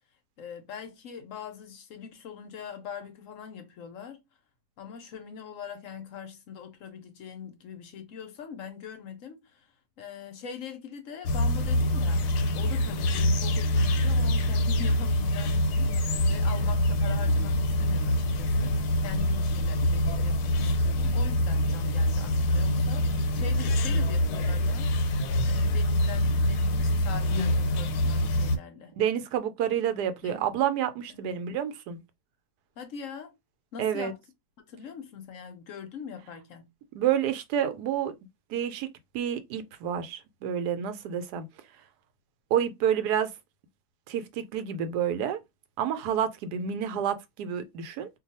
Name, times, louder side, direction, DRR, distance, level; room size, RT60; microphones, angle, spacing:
voice 1, 0.4-4.2 4.8-9.7 10.0-12.2 12.6-24.9 25.4-29.0 30.2-30.4 31.1-31.4 32.8-33.3 33.7-34.2 34.7-36.7, left 7 dB, 65° left, 0.9 m, -42 dB
sound 1, 11.3-28.6, left 1 dB, 85° left, 1.1 m, -25 dB
voice 2, 28.9-32.0 33.8-34.1 36.9-38.1 38.5-38.9 39.1-41.5 42.5-43.3 44.1-45.4 45.8-48.1, right 9 dB, 85° right, 1.2 m, -29 dB
2.6 x 2.3 x 4.1 m
omnidirectional pair, 1.7 m